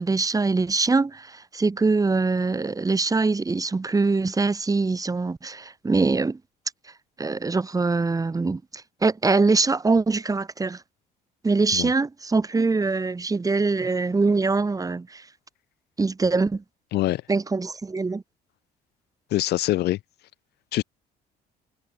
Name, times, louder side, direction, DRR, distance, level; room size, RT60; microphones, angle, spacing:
voice 1, 0.0-6.4 7.2-10.8 11.4-15.2 16.0-16.6 17.3-18.2, right 3 dB, 20° right, 5.0 m, -23 dB
voice 2, 19.3-20.0 20.7-20.8, left 16 dB, 75° left, 2.1 m, -24 dB
cardioid pair, 110°, 17 cm